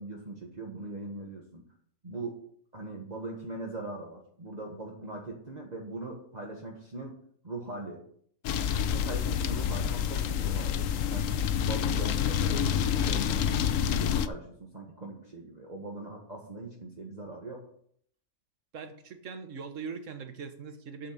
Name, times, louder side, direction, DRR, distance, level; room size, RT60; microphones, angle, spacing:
voice 1, 0.0-1.6 2.0-2.4 2.7-7.2 7.4-8.0 8.8-11.3 11.6-17.7, right 2 dB, 30° right, -1 dB, 1.6 m, -40 dB
sound 1, 8.4-14.3, left 8 dB, 75° left, 1.1 m, -28 dB
voice 2, 18.7-21.1, right 5 dB, 65° right, 8 dB, 1.6 m, -41 dB
8.5 x 7.2 x 6.6 m, 0.64 s
omnidirectional pair, 1.4 m